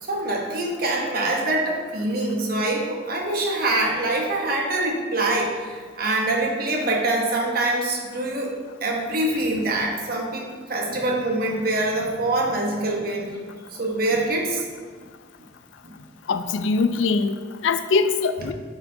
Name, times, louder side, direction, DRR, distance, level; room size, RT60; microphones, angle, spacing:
voice 1, 0.0-8.5 8.8-13.4 13.8-14.7 15.8-15.9, right 2 dB, 50° right, -1 dB, 1.1 m, -24 dB
voice 2, 16.3-18.5, left 4 dB, 85° left, 11 dB, 0.4 m, -22 dB
8.8 x 4.5 x 2.8 m, 1.5 s
head